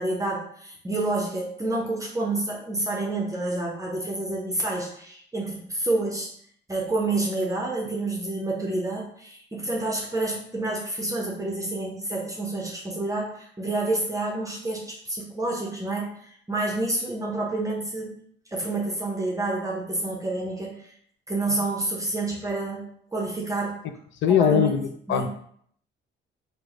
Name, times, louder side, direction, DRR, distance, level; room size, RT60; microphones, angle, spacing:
voice 1, 0.0-6.3 6.7-18.2 18.5-20.9 21.3-23.8 24.3-24.8 25.1-25.3, right 2 dB, 15° right, -2 dB, 0.6 m, -29 dB
voice 2, 24.2-25.3, left 8 dB, 70° left, 9 dB, 0.4 m, -21 dB
3.0 x 2.1 x 3.6 m, 0.64 s
cardioid pair, 90°, 20 cm